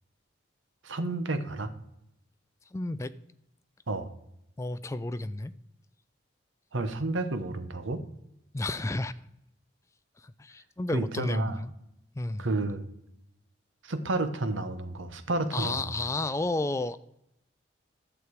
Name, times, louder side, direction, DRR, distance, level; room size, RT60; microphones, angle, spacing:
voice 1, 0.8-1.7 3.9-4.1 6.7-8.0 10.9-11.6 12.4-12.8 13.8-15.8, right 2 dB, 85° right, 10 dB, 0.9 m, -31 dB
voice 2, 2.7-3.1 4.6-5.5 8.5-9.1 10.2-11.7 12.1-12.5 15.5-17.0, left 2 dB, 15° left, 13 dB, 0.3 m, -32 dB
11.0 x 6.7 x 4.7 m, 0.81 s
head